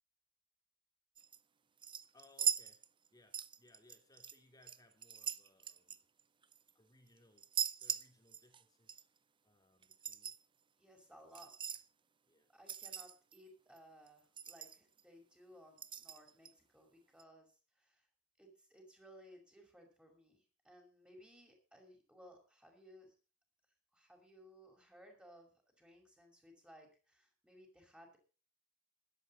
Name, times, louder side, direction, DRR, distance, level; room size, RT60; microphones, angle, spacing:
sound 1, 1.2-1.4 1.8-3.1 3.3-4.4 4.6-6.7 7.4-8.6 8.9-9.0 9.8-10.4 11.3-11.8 12.7-13.4 13.8-13.9 14.1-14.2 14.4-15.0 15.8-16.5 17.2-17.3, right 8 dB, 25° right, 0.7 m, -40 dB
voice 1, 2.1-2.8 3.1-6.0 6.7-7.5 7.8-9.0 9.4-10.4 11.2-11.3 12.2-12.5, left 2 dB, 20° left, 4 dB, 3.0 m, -67 dB
voice 2, 10.8-11.8 12.5-18.1 18.4-23.2 23.9-28.2, equal, 5° right, 2 dB, 5.6 m, -61 dB
17.0 x 12.0 x 4.1 m, 0.35 s
head